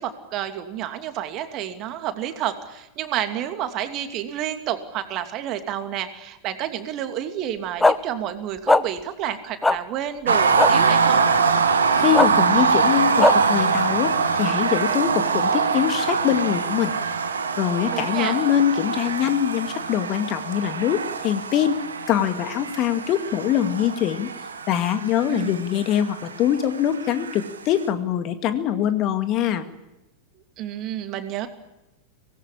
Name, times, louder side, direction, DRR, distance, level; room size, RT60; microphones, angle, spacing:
voice 1, 0.0-11.3 17.9-18.3 25.3-25.6 30.6-31.5, right 11 dB, 35° right, 8 dB, 2.8 m, -30 dB
sound 1, 7.8-8.0 8.7-8.8 9.6-9.8 10.6-10.7 12.1-12.3 13.2-13.3, left 2 dB, 5° left, 1.0 m, -16 dB
sound 2, 10.3-27.5, right 5 dB, 70° right, 2.2 m, -23 dB
voice 2, 12.0-16.9 17.6-21.8 22.1-24.3 24.7-29.6, left 10 dB, 35° left, 10 dB, 2.2 m, -23 dB
25.0 x 19.0 x 10.0 m, 0.95 s
figure-of-eight pair, 90°, 0 cm